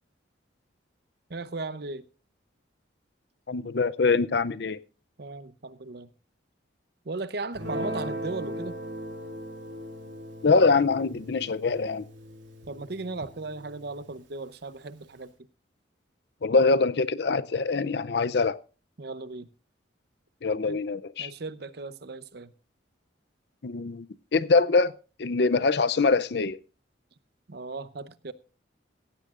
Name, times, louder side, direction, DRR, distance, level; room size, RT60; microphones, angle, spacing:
voice 1, 1.3-2.0 5.2-6.1 7.0-8.8 12.7-15.3 19.0-19.5 20.7-20.8 21.2-22.5 27.5-28.3, right 3 dB, 55° right, 0.7 m, -36 dB
voice 2, 3.5-4.8 10.4-12.0 16.4-18.6 20.4-21.3 23.6-24.1 24.3-24.9 25.2-26.6, left 4 dB, 60° left, 0.5 m, -23 dB
Guitar, 7.5-14.1, equal, 80° right, 3.2 m, -38 dB
16.5 x 15.0 x 2.5 m
head